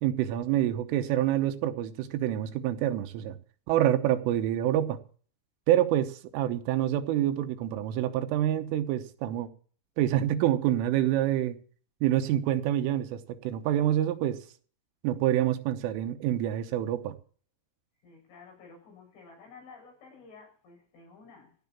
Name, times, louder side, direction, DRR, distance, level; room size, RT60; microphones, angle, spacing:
voice 1, 0.0-3.4 3.7-5.0 5.7-9.5 10.0-11.6 12.0-14.4 15.0-17.2, right 12 dB, 80° right, 3.4 m, -27 dB
voice 2, 18.0-21.6, left 4 dB, 65° left, 9.2 m, -52 dB
16.5 x 7.4 x 7.1 m
omnidirectional pair, 5.8 m